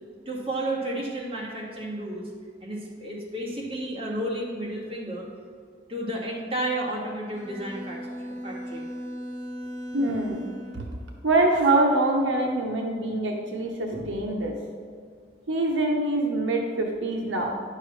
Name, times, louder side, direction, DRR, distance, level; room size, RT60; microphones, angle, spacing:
voice 1, 0.2-2.3 2.6-5.3 5.9-8.9, right 1 dB, 30° right, -5 dB, 1.7 m, -32 dB
Bowed string instrument, 7.3-11.0, equal, 20° left, 1.4 m, -37 dB
voice 2, 9.9-10.4 10.7-10.8 11.2-14.5 15.5-17.5, right 2 dB, 75° right, 1 dB, 0.8 m, -24 dB
9.9 x 6.6 x 3.2 m, 2.2 s
head